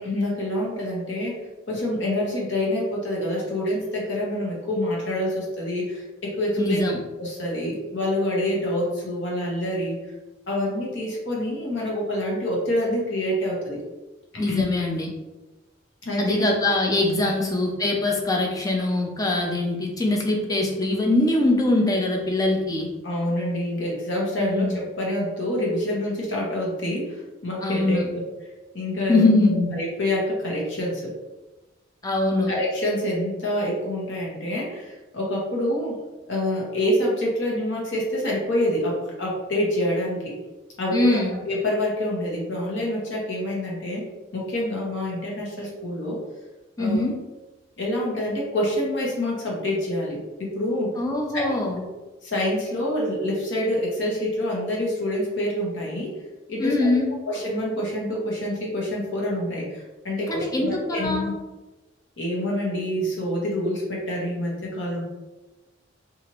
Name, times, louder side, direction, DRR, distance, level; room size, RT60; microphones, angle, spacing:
voice 1, 0.0-1.4 1.7-6.8 7.2-10.0 10.5-13.8 14.3-14.6 16.0-16.4 17.2-17.3 23.0-28.2 28.7-29.2 29.7-31.1 32.5-36.0 36.3-40.3 40.8-44.1 44.3-46.2 46.8-47.1 47.8-50.9 51.3-51.6 52.2-56.1 56.5-56.9 57.3-61.3 62.2-65.0, left 1 dB, 65° left, -3 dB, 0.9 m, -27 dB
voice 2, 6.6-7.0 14.4-15.1 16.2-22.9 24.4-24.8 27.6-28.1 29.1-29.7 32.0-32.5 40.9-41.3 46.8-47.2 51.0-51.8 56.6-57.1 60.3-61.3, left 2 dB, 20° left, 1 dB, 0.4 m, -22 dB
2.9 x 2.5 x 2.9 m, 1.1 s
head